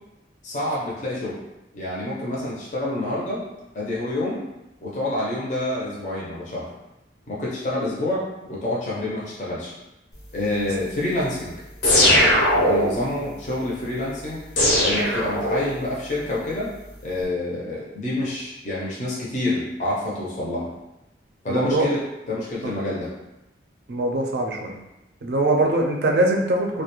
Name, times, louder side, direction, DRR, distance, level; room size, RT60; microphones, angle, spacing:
voice 1, 0.4-1.4 1.7-3.4 3.7-4.4 4.8-6.7 7.3-9.7 10.3-11.6 12.5-14.4 14.8-16.7 17.0-20.7 21.4-22.0 22.3-23.1, left 1 dB, 40° left, -6 dB, 0.5 m, -27 dB
sound 1, 11.8-13.1 14.6-15.9, left 1 dB, 90° left, 0.9 m, -19 dB
voice 2, 21.5-21.9 22.6-22.7 23.9-24.8 25.2-26.8, right 2 dB, 60° right, 1 dB, 0.4 m, -22 dB
2.3 x 2.1 x 2.9 m, 0.94 s
head